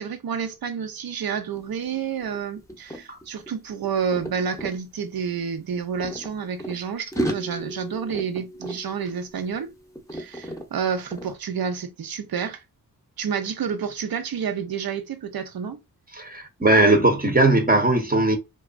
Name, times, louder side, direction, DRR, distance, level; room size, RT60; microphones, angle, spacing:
voice 1, 0.0-9.7 10.1-12.6 13.2-15.8, right 7 dB, 75° right, 0.6 m, -29 dB
sound 1, 1.5-1.7 2.0-4.8 5.6-6.8 7.1-9.7 9.9-10.7 11.1-11.3, equal, 10° left, 0.7 m, -34 dB
voice 2, 16.1-18.4, right 2 dB, 25° right, 0.7 m, -19 dB
2.9 x 2.3 x 2.4 m
wide cardioid pair, 90°, 36 cm